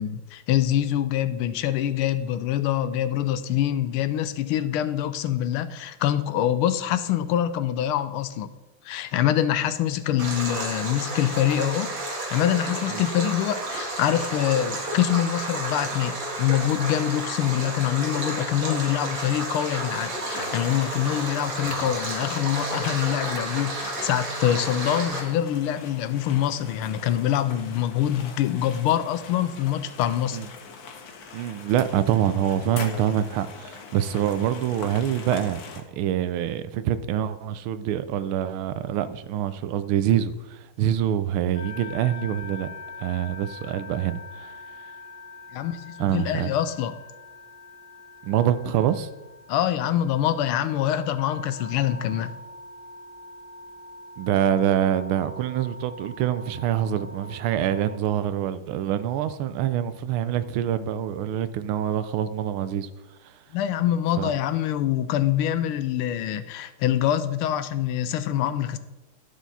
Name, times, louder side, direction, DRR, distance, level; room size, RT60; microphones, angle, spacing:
voice 1, 0.0-8.5 8.8-11.9 12.3-30.4 45.5-47.0 49.5-52.3 63.5-68.8, left 11 dB, 85° left, 1.5 m, -25 dB
Stream, 10.2-25.2, right 2 dB, 60° right, 2.7 m, -31 dB
sound 1, 20.1-35.8, left 5 dB, 55° left, 1.2 m, -42 dB
voice 2, 31.3-42.7 43.0-44.5 46.0-46.5 48.2-49.1 54.2-62.9 63.2-63.3 64.2-64.3, right 10 dB, 80° right, 1.4 m, -25 dB
sound 2, 41.5-58.0, left 2 dB, 5° left, 2.0 m, -43 dB
11.5 x 6.5 x 4.1 m
omnidirectional pair, 2.3 m